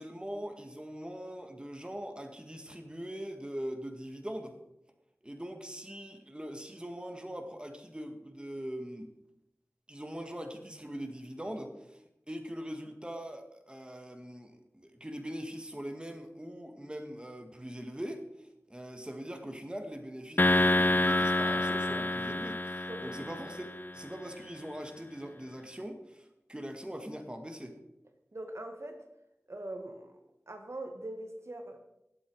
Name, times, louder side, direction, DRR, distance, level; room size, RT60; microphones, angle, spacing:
voice 1, 0.0-4.6 5.2-9.1 9.9-27.8, equal, 15° right, 5 dB, 1.9 m, -42 dB
sound 1, 20.4-23.9, left 1 dB, 35° left, 0.5 m, -28 dB
sound 2, 21.1-23.6, left 4 dB, 10° left, 1.9 m, -41 dB
voice 2, 28.3-29.0 29.5-30.1 30.5-31.8, right 1 dB, 55° right, 4 dB, 1.8 m, -41 dB
19.0 x 8.3 x 4.8 m, 0.86 s
wide cardioid pair, 45°, 6 cm